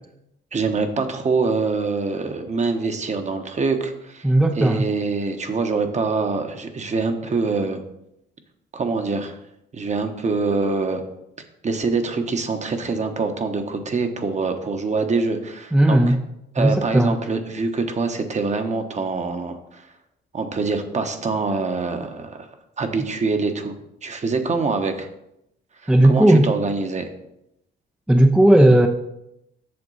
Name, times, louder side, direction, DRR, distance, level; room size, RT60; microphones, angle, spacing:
voice 1, 0.5-4.3 4.6-7.8 8.7-9.4 9.7-11.0 11.6-16.1 16.5-19.9 20.3-22.5 22.8-23.7 24.0-25.1 25.8-27.1, right 4 dB, 35° right, 6 dB, 1.1 m, -24 dB
voice 2, 4.2-4.9 15.7-16.2 16.6-17.2 25.9-26.5 28.1-28.9, right 1 dB, 5° right, 5 dB, 0.5 m, -15 dB
7.8 x 6.7 x 4.1 m, 0.83 s
cardioid pair, 90°, 20 cm